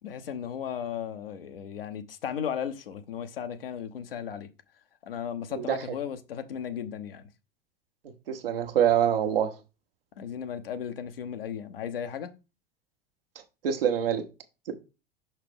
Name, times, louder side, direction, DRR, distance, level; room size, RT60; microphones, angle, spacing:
voice 1, 0.0-4.5 5.0-7.3 10.2-12.3, left 8 dB, 70° left, 1.0 m, -35 dB
voice 2, 8.3-9.5 13.6-14.2, right 9 dB, 70° right, 1.3 m, -25 dB
5.8 x 5.8 x 3.6 m
figure-of-eight pair, 85°, 30 cm